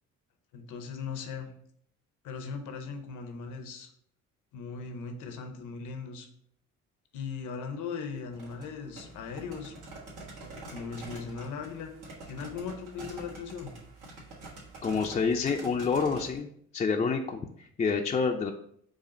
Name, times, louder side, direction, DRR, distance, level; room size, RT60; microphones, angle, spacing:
voice 1, 0.5-1.5 2.2-3.9 4.5-6.3 7.1-9.7 10.4-11.9 12.3-13.7, left 5 dB, 90° left, 6 dB, 0.8 m, -38 dB
sound 1, 8.2-16.4, right 2 dB, 85° right, 1.5 m, -46 dB
voice 2, 14.8-16.5 16.7-18.5, left 5 dB, 25° left, 4 dB, 0.3 m, -28 dB
4.9 x 2.4 x 4.1 m, 0.66 s
cardioid pair, 90°, 30 cm